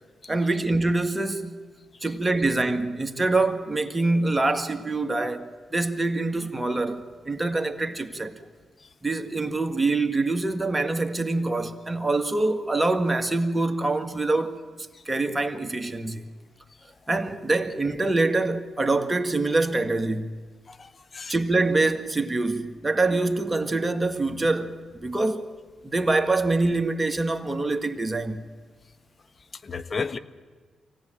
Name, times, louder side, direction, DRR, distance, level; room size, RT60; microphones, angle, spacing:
voice 1, 0.3-1.6 2.0-8.3 9.0-14.6 15.1-16.3 17.1-20.4 21.3-25.5 25.8-28.4, right 2 dB, 20° right, 2.0 m, -25 dB
voice 2, 20.7-21.3 23.1-23.2 29.6-30.2, left 5 dB, 45° left, 1.2 m, -34 dB
24.0 x 17.0 x 9.0 m
hypercardioid pair, 40°, 0 cm